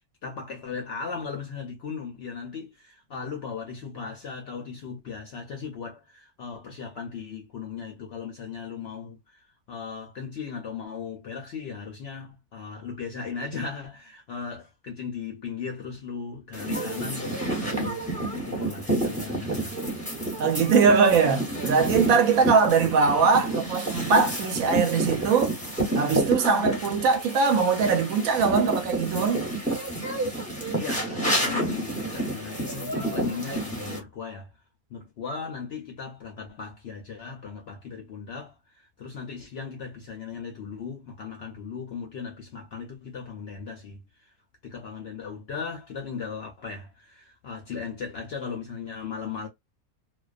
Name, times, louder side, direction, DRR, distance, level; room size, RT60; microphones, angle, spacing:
voice 1, 0.2-19.8 30.8-34.5 34.9-44.3 44.6-49.5, left 5 dB, 65° left, 0.6 m, -37 dB
sound 1, 16.5-34.0, right 1 dB, 5° left, 0.7 m, -29 dB
voice 2, 20.4-25.5 25.9-29.4, right 5 dB, 75° right, 1.0 m, -21 dB
2.4 x 2.2 x 2.3 m
omnidirectional pair, 1.5 m